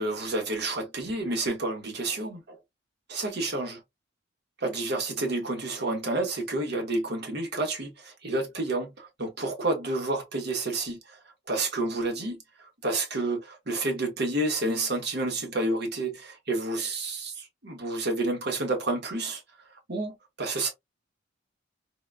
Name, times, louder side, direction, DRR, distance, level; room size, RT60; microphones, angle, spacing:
voice 1, 0.0-2.6 3.1-3.8 4.6-11.2 11.5-19.4 19.9-20.7, right 2 dB, 55° right, 1.1 m, -30 dB
3.8 x 2.2 x 2.2 m
head